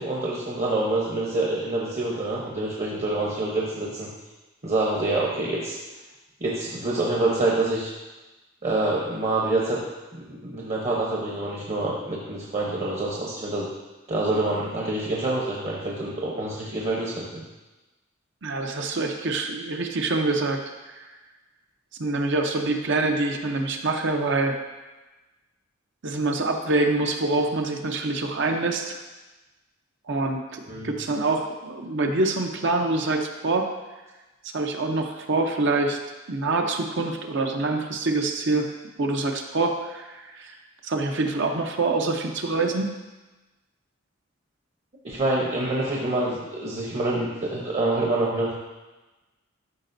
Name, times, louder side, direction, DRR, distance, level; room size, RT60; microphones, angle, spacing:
voice 1, 0.0-4.1 4.6-5.8 6.4-7.9 8.6-9.9 10.1-13.7 14.1-17.4 30.7-30.9 45.0-48.5, right 2 dB, 35° right, -4 dB, 0.9 m, -26 dB
voice 2, 18.4-20.6 20.9-21.1 22.0-24.6 26.0-29.0 30.1-33.7 34.4-36.0 36.3-38.7 39.0-40.5 40.8-42.9, right 2 dB, 65° right, 3 dB, 0.7 m, -25 dB
12.0 x 5.1 x 2.6 m, 1.1 s
head